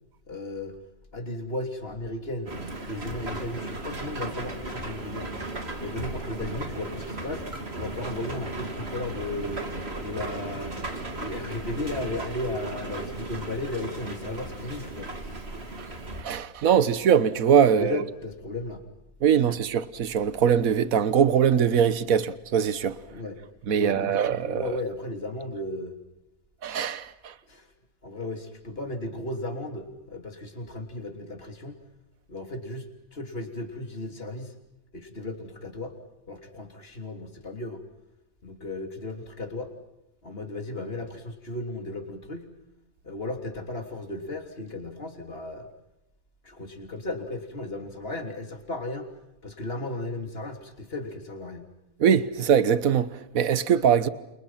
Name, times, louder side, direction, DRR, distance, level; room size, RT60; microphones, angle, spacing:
voice 1, 0.3-0.8 1.1-2.6 2.9-5.3 5.8-7.5 7.7-9.6 10.0-10.8 11.1-15.1 17.7-18.8 19.5-19.6 23.1-23.4 23.7-26.0 27.5-27.7 28.0-31.8 32.3-32.9 33.1-34.5 34.9-35.9 36.3-37.8 38.4-39.7 40.2-42.5 43.0-45.7 46.4-49.1 49.4-51.7, left 2 dB, 40° left, 3.5 m, -35 dB
sound 1, 2.5-16.2, right 2 dB, 45° right, 3.1 m, -36 dB
voice 2, 16.2-18.0 19.2-23.0 23.7-24.8 26.6-27.3 52.0-54.1, right 8 dB, 65° right, 1.6 m, -22 dB
30.0 x 28.5 x 5.8 m
omnidirectional pair, 1.6 m